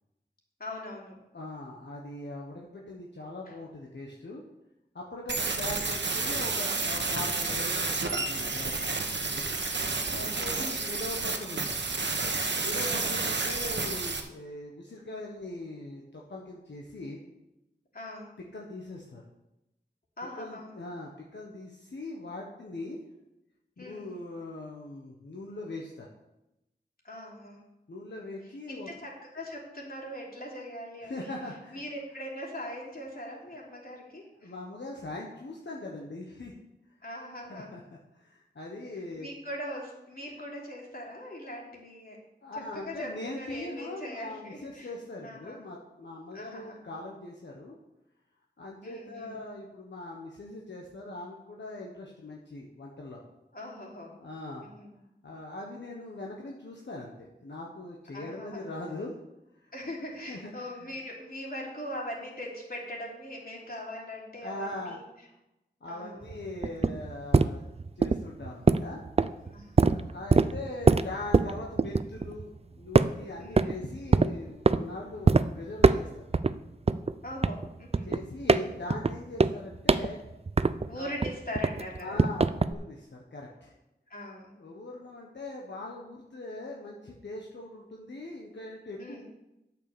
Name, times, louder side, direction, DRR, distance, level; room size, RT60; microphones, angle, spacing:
voice 1, 0.6-1.1 3.5-3.6 10.1-10.6 12.9-13.2 17.9-18.3 20.2-20.7 23.8-24.1 27.0-27.6 28.7-31.4 31.7-34.5 37.0-37.7 39.2-42.2 42.5-44.9 45.2-45.6 46.3-46.9 48.8-49.4 53.5-54.1 54.6-54.9 58.1-58.6 59.7-65.0 65.9-66.4 69.5-70.0 73.4-73.8 77.2-78.1 80.9-82.2 84.1-84.5 89.0-89.2, left 1 dB, 55° left, -3 dB, 3.1 m, -41 dB
voice 2, 1.3-4.4 4.9-9.4 10.2-11.8 12.6-17.2 18.5-19.2 20.3-23.0 23.8-26.1 27.9-28.9 31.0-31.8 33.7-33.8 34.4-36.5 37.5-37.8 38.2-39.3 42.4-47.8 48.6-53.2 54.2-54.7 55.2-59.1 59.6-59.7 60.3-60.5 60.8-61.0 64.4-65.0 65.8-67.7 68.0-69.0 69.9-76.2 78.0-80.2 80.9-81.1 82.0-83.7 84.6-89.2, left 2 dB, 85° left, -2 dB, 1.3 m, -41 dB
sound 1, 5.3-14.2, right 3 dB, 80° right, 1.2 m, -30 dB
sound 2, 66.2-72.6 72.9-73.8 74.1-74.8 75.3-75.4 75.8-76.5 76.9-81.0 81.2-82.7, right 4 dB, 35° right, 0.5 m, -23 dB
8.7 x 6.6 x 6.8 m, 0.91 s
wide cardioid pair, 45°, 18 cm